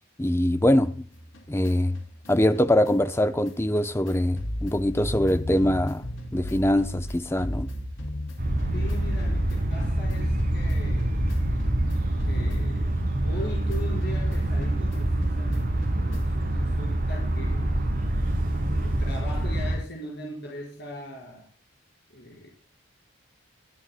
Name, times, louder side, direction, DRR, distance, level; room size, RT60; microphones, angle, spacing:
voice 1, 0.2-1.0 1.5-2.0 2.3-6.0 6.3-7.7, left 1 dB, 10° left, 0.6 m, -23 dB
sound 1, 1.1-13.4 13.7-16.5, left 1 dB, 70° left, 2.5 m, -35 dB
sound 2, 8.4-19.8, right 1 dB, 40° right, 7.6 m, -26 dB
voice 2, 8.7-11.2 12.3-12.9 13.2-17.7 18.7-21.5 22.1-22.5, left 1 dB, 50° left, 4.8 m, -40 dB
24.0 x 13.5 x 2.2 m
head